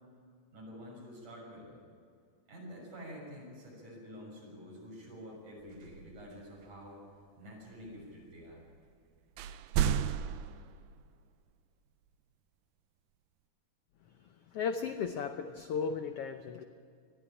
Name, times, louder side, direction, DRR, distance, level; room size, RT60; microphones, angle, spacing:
voice 1, 0.5-1.8 2.5-7.0 7.4-8.6, equal, 70° right, -2 dB, 8.1 m, -48 dB
sound 1, 5.6-6.9 7.8-8.5 8.8-8.9 9.2-11.2, right 9 dB, 85° right, 2.3 m, -34 dB
voice 2, 14.5-16.6, left 6 dB, 75° left, 7 dB, 1.4 m, -35 dB
20.5 x 14.0 x 10.0 m, 2.3 s
omnidirectional pair, 3.7 m